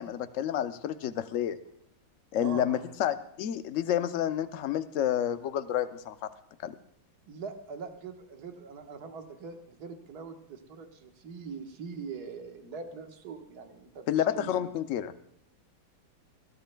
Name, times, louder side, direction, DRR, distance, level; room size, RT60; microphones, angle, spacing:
voice 1, 0.0-1.6 2.3-6.1 6.6-6.7 14.1-15.1, left 10 dB, 70° left, 10 dB, 0.7 m, -29 dB
voice 2, 2.4-2.8 7.3-14.7, right 5 dB, 55° right, 4 dB, 1.8 m, -42 dB
21.5 x 16.5 x 2.3 m, 0.73 s
omnidirectional pair, 2.1 m